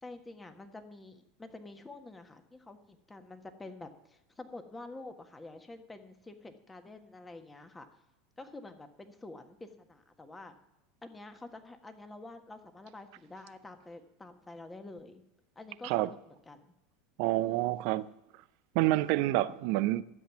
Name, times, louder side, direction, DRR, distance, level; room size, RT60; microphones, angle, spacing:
voice 1, 0.0-7.9 8.4-10.6 11.0-15.2 15.5-16.7, left 2 dB, 15° left, 1.5 m, -48 dB
voice 2, 17.2-18.1 18.7-20.0, right 16 dB, 60° right, 0.5 m, -28 dB
13.0 x 7.8 x 5.9 m
hypercardioid pair, 80°, 0 cm